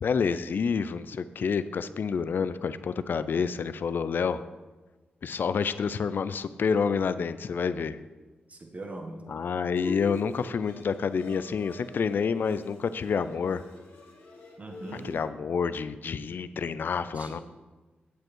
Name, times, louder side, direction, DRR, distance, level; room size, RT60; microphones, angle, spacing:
voice 1, 0.0-4.4 5.2-8.0 9.3-13.6 14.9-17.4, left 6 dB, 65° left, 13 dB, 0.4 m, -28 dB
voice 2, 8.5-9.2 14.6-15.1 17.1-17.4, right 2 dB, 40° right, 3 dB, 1.4 m, -41 dB
Bowed string instrument, 9.8-15.3, left 2 dB, 80° left, 1.9 m, -44 dB
8.3 x 7.8 x 4.5 m, 1.2 s
cardioid pair, 60°, 4 cm